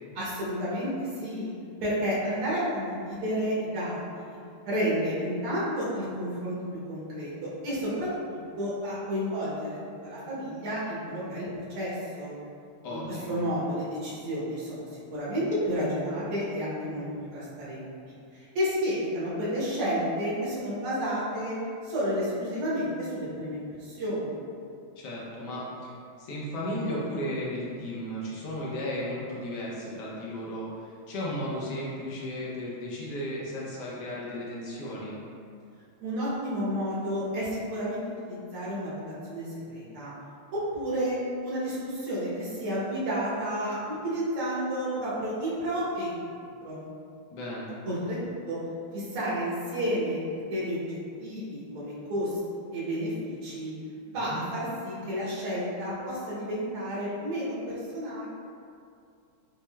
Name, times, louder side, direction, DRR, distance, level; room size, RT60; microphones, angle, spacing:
voice 1, 0.2-1.5 1.8-4.4 4.7-6.6 6.9-8.1 8.6-12.3 12.9-13.0 13.3-17.0 17.3-17.9 18.3-21.6 21.8-24.4 36.0-38.0 38.3-39.0 39.3-40.1 40.5-46.8 47.9-48.2 48.5-48.6 48.9-52.4 52.7-53.7 54.1-58.2, equal, 85° right, -9 dB, 1.9 m, -31 dB
voice 2, 12.8-13.4 25.0-25.9 26.2-35.2 47.3-47.7 54.3-54.5, equal, 65° left, -6 dB, 1.1 m, -35 dB
6.1 x 2.0 x 2.2 m, 2.4 s
omnidirectional pair, 2.4 m